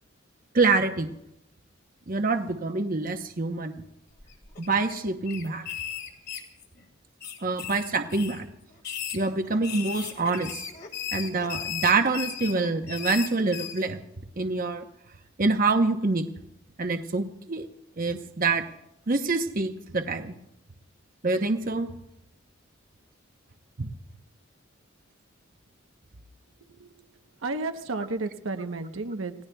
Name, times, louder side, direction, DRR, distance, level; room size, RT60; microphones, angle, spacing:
voice 1, 0.5-1.1 2.1-3.8 4.6-5.7 7.4-8.5 9.1-10.6 11.1-14.0 14.4-14.9 15.4-16.2 16.8-17.7 18.0-18.6 19.1-20.3 21.2-21.9 23.8-23.9, right 3 dB, 45° right, 6 dB, 0.9 m, -26 dB
sound 1, 4.2-4.9 5.3-6.8 7.2-8.4 8.8-13.8, left 9 dB, 55° left, 2.4 m, -36 dB
voice 2, 27.4-29.3, right 3 dB, 80° right, 6 dB, 0.9 m, -32 dB
29.5 x 17.0 x 2.3 m, 0.82 s
head